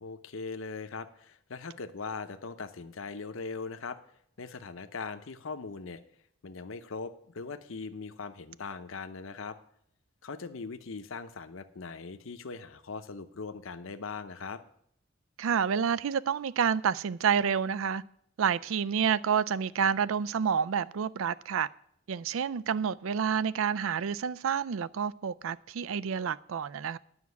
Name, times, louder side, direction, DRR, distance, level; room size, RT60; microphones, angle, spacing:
voice 1, 0.0-4.0 4.4-6.0 6.4-9.6 10.2-14.6, left 4 dB, 70° left, 0.7 m, -40 dB
voice 2, 15.4-18.0 18.4-21.7 22.1-27.0, right 7 dB, 75° right, 0.4 m, -29 dB
9.7 x 5.8 x 8.2 m
head